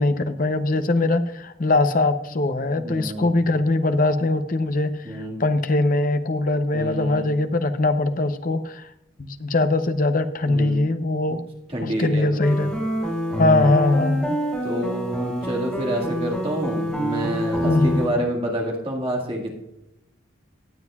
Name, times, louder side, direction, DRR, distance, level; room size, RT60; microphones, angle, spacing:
voice 1, 0.0-4.9 5.4-8.9 9.2-11.4 11.8-12.7 13.4-14.4 17.6-18.0, left 2 dB, 45° left, 9 dB, 0.6 m, -21 dB
voice 2, 2.8-3.3 5.0-5.4 6.7-7.3 10.5-10.8 11.7-12.7 13.3-13.7 14.6-19.5, right 1 dB, 30° right, -1 dB, 1.9 m, -28 dB
sound 1, 12.4-18.1, equal, 5° left, 4.4 m, -27 dB
18.5 x 7.6 x 2.4 m, 0.82 s
head